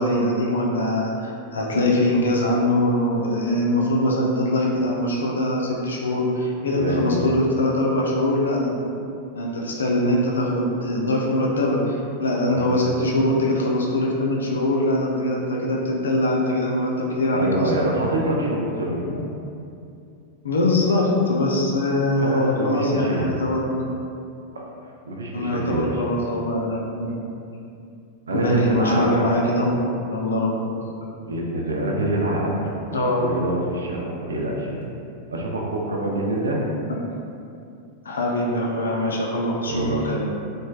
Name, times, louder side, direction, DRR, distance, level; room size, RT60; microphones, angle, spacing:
voice 1, 0.0-8.8 9.3-17.8 19.0-19.2 20.4-23.9 25.3-27.1 28.3-30.6 32.9-33.2 36.9-37.0 38.0-40.2, left 1 dB, 70° left, -2 dB, 0.4 m, -22 dB
voice 2, 6.7-7.2 12.4-12.6 17.3-19.2 22.1-23.3 25.1-26.0 28.3-29.2 31.2-34.8 35.3-36.6 39.7-40.2, right 1 dB, 70° right, -2 dB, 0.4 m, -25 dB
3.1 x 2.1 x 2.3 m, 2.5 s
figure-of-eight pair, 90°, 0 cm